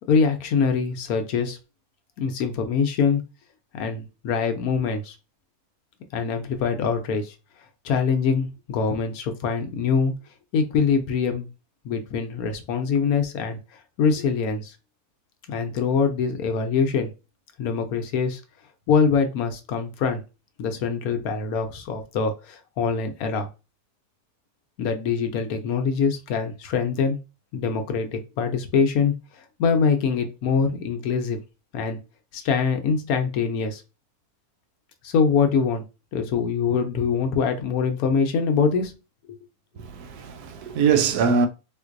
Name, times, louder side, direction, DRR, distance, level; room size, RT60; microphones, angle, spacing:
voice 1, 0.1-1.6 2.2-3.2 3.7-5.2 6.1-7.3 7.8-10.1 10.5-11.5 11.8-13.6 14.0-14.8 15.5-17.1 17.6-18.4 18.9-20.2 20.6-23.5 24.8-27.2 27.5-31.4 31.7-32.0 32.3-33.8 35.0-35.8 36.1-38.9 39.3-39.4, left 5 dB, 70° left, 1.0 m, -24 dB
voice 2, 39.8-41.5, right 6 dB, 75° right, 1.0 m, -22 dB
3.8 x 2.5 x 2.5 m
omnidirectional pair, 1.7 m